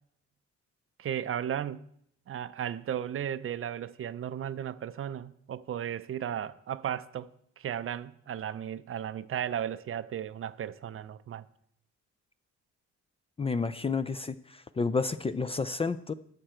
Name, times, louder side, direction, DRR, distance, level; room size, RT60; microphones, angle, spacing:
voice 1, 1.0-1.8 2.3-11.5, right 9 dB, 45° right, 0.5 m, -35 dB
voice 2, 13.4-16.1, left 4 dB, 20° left, 0.4 m, -30 dB
12.5 x 6.4 x 4.4 m
cardioid pair, 90°, 30 cm